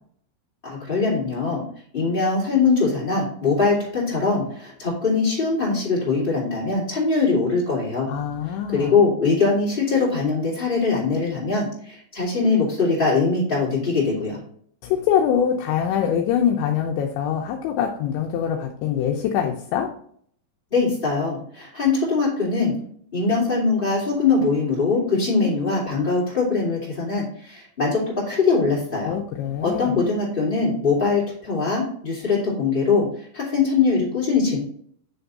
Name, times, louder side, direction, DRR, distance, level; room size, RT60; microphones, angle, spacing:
voice 1, 0.6-1.6 1.9-8.1 8.5-14.4 20.7-22.7 23.1-29.1 29.6-34.6, left 4 dB, 25° left, -7 dB, 1.1 m, -22 dB
voice 2, 8.1-8.9 14.8-19.9 29.0-30.0, left 8 dB, 80° left, 2 dB, 2.7 m, -24 dB
9.5 x 3.5 x 4.0 m, 0.62 s
omnidirectional pair, 5.7 m